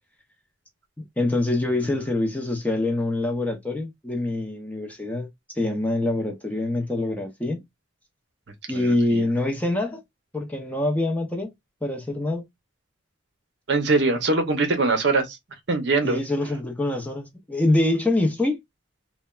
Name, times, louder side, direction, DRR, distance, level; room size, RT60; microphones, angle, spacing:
voice 1, 1.0-5.3 5.6-7.6 8.7-10.0 10.3-11.5 11.8-12.4 16.0-18.6, left 2 dB, 5° left, 0.6 m, -25 dB
voice 2, 8.7-9.2 13.7-15.4 15.7-16.2, right 3 dB, 60° right, 0.7 m, -22 dB
3.2 x 2.1 x 2.3 m
head